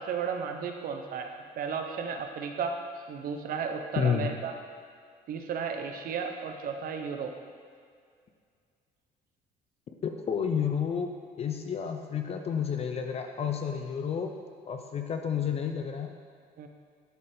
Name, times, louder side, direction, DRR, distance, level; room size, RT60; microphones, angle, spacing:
voice 1, 0.0-2.8 3.1-4.5 5.3-7.3 16.6-16.7, right 6 dB, 60° right, 5 dB, 0.7 m, -34 dB
voice 2, 4.0-4.3 10.0-11.1 11.4-14.3 14.7-16.1, left 7 dB, 35° left, 5 dB, 0.5 m, -30 dB
10.5 x 4.2 x 3.4 m, 2.1 s
cardioid pair, 110°, 17 cm